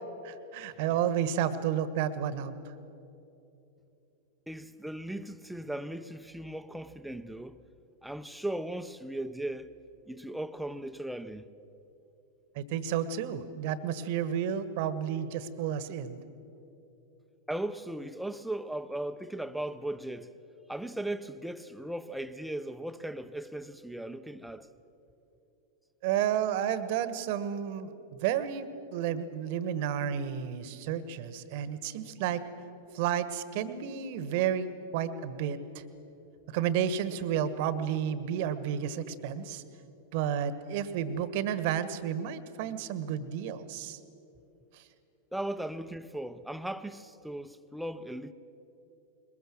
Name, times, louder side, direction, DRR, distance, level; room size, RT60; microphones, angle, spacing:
voice 1, 0.2-2.7 12.5-16.2 26.0-32.4 32.9-34.7 34.9-35.8 36.5-39.6 40.1-44.0 44.7-44.8, right 9 dB, 50° right, 1.3 m, -31 dB
voice 2, 4.5-7.6 8.0-9.7 10.1-11.5 17.5-20.3 20.7-24.7 45.3-48.3, right 1 dB, ahead, 0.8 m, -37 dB
21.5 x 20.5 x 7.7 m
figure-of-eight pair, 90°, 0 cm